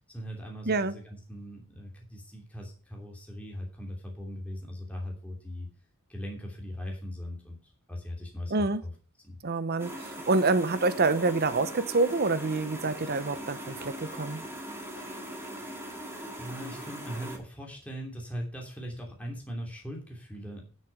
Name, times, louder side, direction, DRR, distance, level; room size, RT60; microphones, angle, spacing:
voice 1, 0.1-5.7 6.1-8.9 9.2-9.4 16.4-20.7, equal, 5° left, 2.9 m, -40 dB
voice 2, 8.5-8.8 9.4-14.4, right 3 dB, 45° right, 0.9 m, -27 dB
sound 1, 9.8-17.4, right 1 dB, 10° right, 2.3 m, -40 dB
12.0 x 6.4 x 5.5 m
head